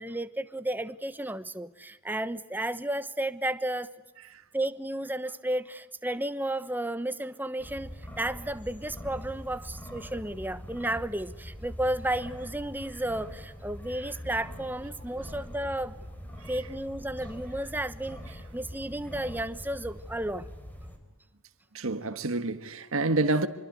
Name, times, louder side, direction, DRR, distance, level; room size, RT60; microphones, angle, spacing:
voice 1, 0.0-3.9 4.5-15.9 16.5-20.5, right 1 dB, 10° right, 1.1 m, -33 dB
sound 1, 7.6-21.0, equal, 10° left, 4.4 m, -43 dB
voice 2, 21.7-23.5, right 2 dB, 75° right, 1.5 m, -28 dB
26.5 x 23.5 x 9.3 m
head